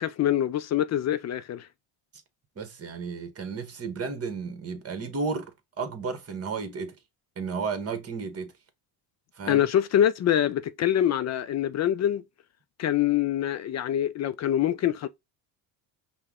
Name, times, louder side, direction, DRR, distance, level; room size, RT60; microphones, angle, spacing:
voice 1, 0.0-1.7 9.5-12.2 12.8-15.1, left 11 dB, 35° left, 0.4 m, -25 dB
voice 2, 2.6-7.0 7.4-8.5 9.4-9.6, right 4 dB, 30° right, 1.2 m, -33 dB
5.4 x 2.3 x 3.6 m
cardioid pair, 105°, 48 cm